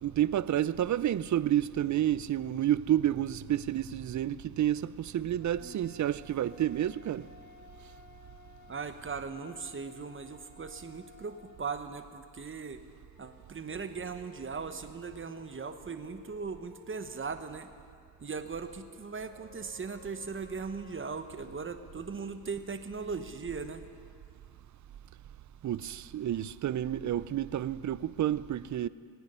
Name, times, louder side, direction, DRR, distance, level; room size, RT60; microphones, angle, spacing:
voice 1, 0.0-7.3 25.6-28.9, right 11 dB, 55° right, 0.5 m, -30 dB
sound 1, 5.4-11.6 13.1-17.4 19.3-21.5, left 4 dB, 35° left, 3.0 m, -57 dB
voice 2, 8.7-12.8 13.2-17.7 18.2-23.8, right 5 dB, 35° right, 1.0 m, -39 dB
22.5 x 9.3 x 5.6 m
cardioid pair, 70°, 36 cm